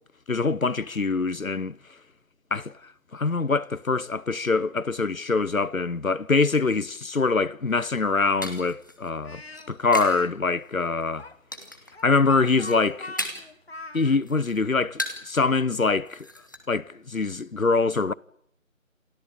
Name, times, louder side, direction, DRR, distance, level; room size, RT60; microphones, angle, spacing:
voice 1, 0.3-1.8 2.5-2.7 3.1-9.4 9.7-11.3 12.0-13.1 13.9-16.3 16.7-18.1, left 4 dB, 85° left, 1.1 m, -24 dB
sound 1, 7.7-10.3 10.6-11.1 11.5-12.0 12.4-13.6 14.0-15.4 15.7-15.8 16.1-16.6, left 1 dB, 15° left, 1.5 m, -36 dB
Speech, 9.2-10.3 11.2-14.2, left 2 dB, 50° left, 1.8 m, -41 dB
28.5 x 16.0 x 8.9 m
figure-of-eight pair, 165°, 40 cm